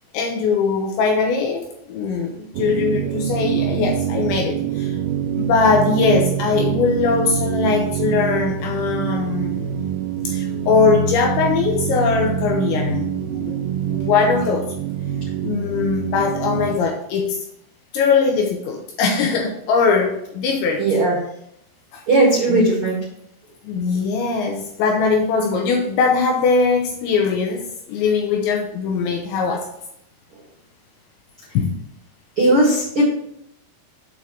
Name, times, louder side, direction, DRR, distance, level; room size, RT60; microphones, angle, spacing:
voice 1, 0.1-5.0 5.4-9.8 10.2-14.7 15.4-17.4 17.9-20.8 21.9-22.0 22.5-22.7 23.6-29.7 31.5-31.7, left 5 dB, 80° left, 2 dB, 2.8 m, -21 dB
sound 1, 2.5-16.8, right 8 dB, 85° right, 2.8 m, -25 dB
voice 2, 20.8-21.2 22.1-23.0 32.3-33.0, right 2 dB, 65° right, -5 dB, 1.3 m, -17 dB
8.5 x 4.4 x 4.9 m, 0.76 s
omnidirectional pair, 5.9 m